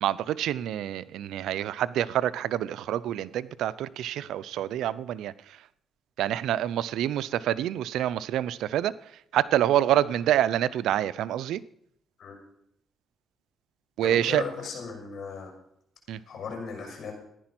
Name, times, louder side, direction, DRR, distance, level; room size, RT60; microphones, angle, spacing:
voice 1, 0.0-5.6 6.2-8.9 9.3-11.6 14.0-14.4 16.1-16.2, right 12 dB, 80° right, 0.6 m, -27 dB
voice 2, 14.0-15.5 16.1-17.1, left 5 dB, 65° left, 6.8 m, -37 dB
15.0 x 10.5 x 6.0 m
cardioid pair, 90°, 0 cm